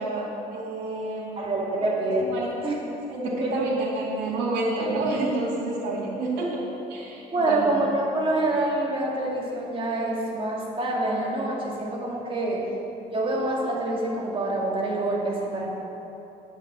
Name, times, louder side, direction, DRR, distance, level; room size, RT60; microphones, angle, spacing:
voice 1, 0.0-1.4 1.8-1.9 2.3-2.5 3.1-6.5 6.9-7.7, right 2 dB, 80° right, -7 dB, 2.4 m, -28 dB
voice 2, 1.4-2.2 2.6-2.8 3.2-3.5 7.3-12.6 13.1-15.7, right 2 dB, 30° right, -2 dB, 2.2 m, -26 dB
9.7 x 5.6 x 7.6 m, 3.0 s
cardioid pair, 110°, 17 cm